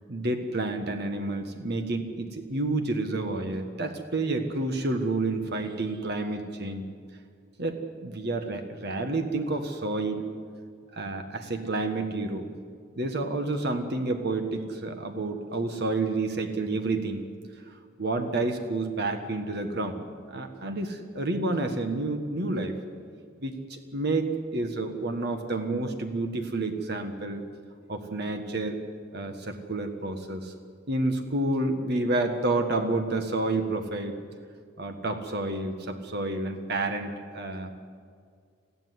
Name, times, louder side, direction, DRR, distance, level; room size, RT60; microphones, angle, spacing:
voice 1, 0.1-6.9 7.6-10.2 10.9-12.5 13.0-17.2 18.0-22.7 23.4-24.3 24.5-27.4 27.9-28.8 29.1-30.5 30.9-34.1 34.8-37.7, right 2 dB, 50° right, 6 dB, 1.6 m, -29 dB
21.0 x 15.0 x 9.5 m, 2.1 s
head